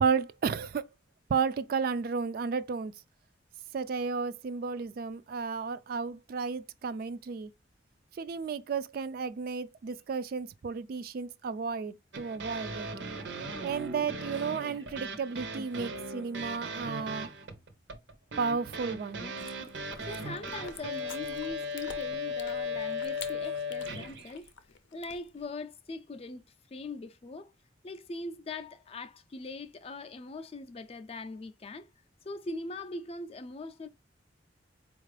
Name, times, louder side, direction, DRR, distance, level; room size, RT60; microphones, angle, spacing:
voice 1, 0.0-0.8 1.3-2.9 3.7-7.5 8.2-12.9 13.6-17.3 18.4-19.2, right 5 dB, 50° right, 0.3 m, -32 dB
sound 1, 12.1-24.3, left 1 dB, 80° right, 0.7 m, -37 dB
Chewing mastication, 19.4-25.5, left 7 dB, 85° left, 0.6 m, -50 dB
voice 2, 20.0-24.5 24.9-27.5 27.8-31.9 32.2-33.9, left 3 dB, 30° left, 0.4 m, -41 dB
4.3 x 2.4 x 3.2 m
head